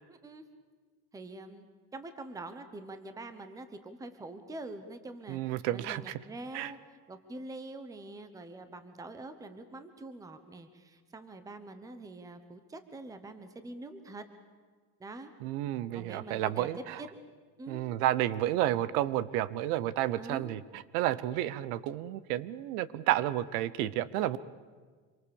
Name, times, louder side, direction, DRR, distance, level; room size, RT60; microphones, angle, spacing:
voice 1, 0.1-0.5 1.1-1.7 1.9-6.8 7.1-14.2 15.0-15.3 15.9-17.2 17.6-17.9 20.2-20.6, right 2 dB, 10° right, 9 dB, 1.0 m, -45 dB
voice 2, 5.3-6.2 6.5-6.7 15.4-17.0 17.7-24.4, right 13 dB, 85° right, 18 dB, 1.1 m, -31 dB
26.5 x 23.5 x 7.2 m, 1.5 s
cardioid pair, 170°, 44 cm